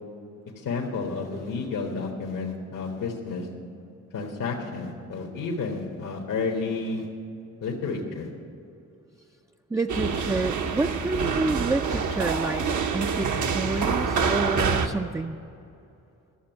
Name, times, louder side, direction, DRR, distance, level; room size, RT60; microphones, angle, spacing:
voice 1, 0.6-3.5 4.1-7.1 7.6-8.3, left 4 dB, 80° left, -1 dB, 1.5 m, -31 dB
voice 2, 9.7-12.7 12.9-15.4, right 3 dB, 10° right, 6 dB, 0.3 m, -28 dB
sound 1, 9.9-14.9, right 5 dB, 70° right, 0.9 m, -26 dB
13.0 x 7.0 x 9.2 m, 2.6 s
cardioid pair, 75°, 31 cm